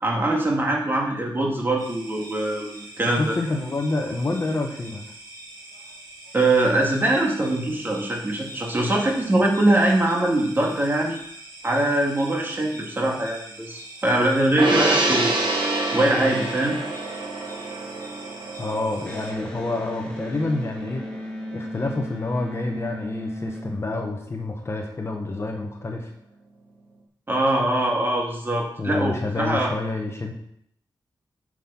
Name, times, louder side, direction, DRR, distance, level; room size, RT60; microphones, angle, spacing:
voice 1, 0.0-3.4 6.3-11.2 11.6-15.4 15.9-16.8 27.3-29.7, right 1 dB, 25° right, -1 dB, 2.2 m, -22 dB
sound 1, 1.8-19.3, right 1 dB, 45° right, 3.8 m, -43 dB
voice 2, 3.2-5.1 18.6-21.3 21.5-26.1 28.8-30.3, left 2 dB, 30° left, 3 dB, 1.2 m, -28 dB
Gong, 14.6-21.2 21.5-21.7, right 2 dB, 65° right, 2.5 m, -27 dB
Electric guitar, 19.0-24.5, left 1 dB, 10° left, 1.7 m, -35 dB
9.2 x 6.3 x 5.9 m, 0.70 s
wide cardioid pair, 150°, 9 cm